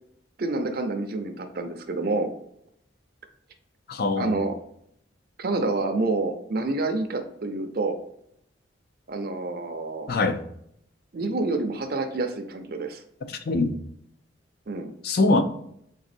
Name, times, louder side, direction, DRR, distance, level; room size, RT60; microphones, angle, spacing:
voice 1, 0.4-2.3 4.2-4.6 5.4-8.0 9.1-10.1 11.1-13.0 14.7-14.9, right 2 dB, 50° right, 6 dB, 0.5 m, -28 dB
voice 2, 3.9-4.4 10.1-10.4 13.3-13.7 15.0-15.4, left 3 dB, 50° left, 7 dB, 0.4 m, -23 dB
4.0 x 3.4 x 2.5 m, 0.72 s
head